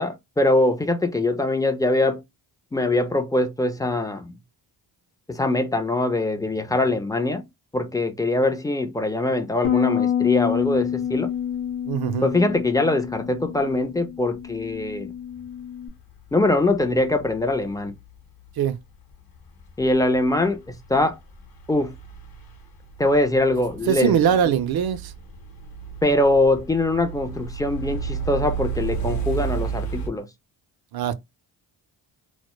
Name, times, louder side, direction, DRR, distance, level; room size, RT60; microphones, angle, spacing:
voice 1, 0.0-2.2 2.7-4.4 5.3-7.4 7.7-11.3 12.2-15.1 16.3-17.9 19.8-20.6 20.9-21.2 21.7-21.9 23.0-24.2 26.0-30.3, left 2 dB, 10° left, 0.4 m, -22 dB
Bass guitar, 9.6-15.9, left 9 dB, 85° left, 0.7 m, -28 dB
sound 1, 10.6-10.8 11.5-11.6 12.1-12.7 12.9-13.1 14.4-14.8 16.3-18.0 18.5-18.6 19.6-20.1 20.7-21.1 21.4-30.1, right 6 dB, 50° left, 0.8 m, -33 dB
voice 2, 11.9-12.3 18.6-18.8 23.9-25.1 28.9-29.1 30.9-31.1, right 8 dB, 55° right, 0.5 m, -22 dB
2.1 x 2.0 x 3.0 m
cardioid pair, 65°, 47 cm